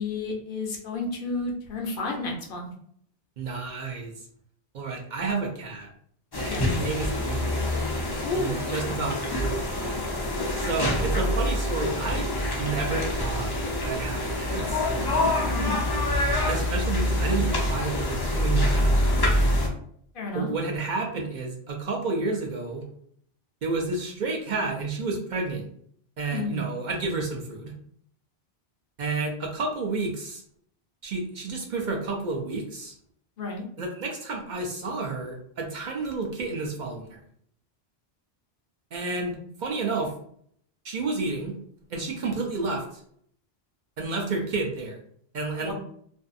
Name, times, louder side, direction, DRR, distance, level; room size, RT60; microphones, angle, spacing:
voice 1, 0.0-2.7 6.5-6.6 8.2-8.8 15.4-15.7 20.1-20.5 26.3-26.6 33.4-33.6 45.6-45.7, left 3 dB, 65° left, 1 dB, 0.7 m, -31 dB
voice 2, 3.4-4.1 4.7-5.9 6.4-7.6 8.3-9.6 10.6-12.2 12.6-13.5 13.8-14.9 16.5-19.3 20.3-22.8 23.6-25.7 26.2-27.7 29.0-30.4 31.0-33.0 33.8-37.2 38.9-40.1 40.8-41.6 41.9-43.0 44.0-45.0 45.3-45.7, right 3 dB, 60° right, 1 dB, 0.6 m, -30 dB
sound 1, 6.3-19.7, left 1 dB, 40° left, 0.3 m, -26 dB
2.5 x 2.3 x 2.5 m, 0.65 s
omnidirectional pair, 1.1 m